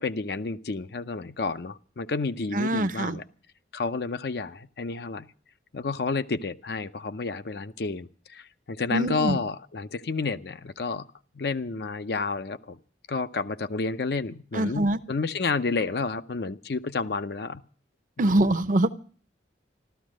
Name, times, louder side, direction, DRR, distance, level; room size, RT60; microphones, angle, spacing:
voice 1, 0.0-3.2 3.7-5.3 5.7-11.1 11.4-12.8 13.1-17.6 18.2-18.4, left 4 dB, 65° left, 11 dB, 0.6 m, -30 dB
voice 2, 2.5-3.2 8.9-9.4 14.5-15.0 18.2-19.0, right 1 dB, 45° right, 11 dB, 0.7 m, -24 dB
14.0 x 13.0 x 6.3 m, 0.42 s
head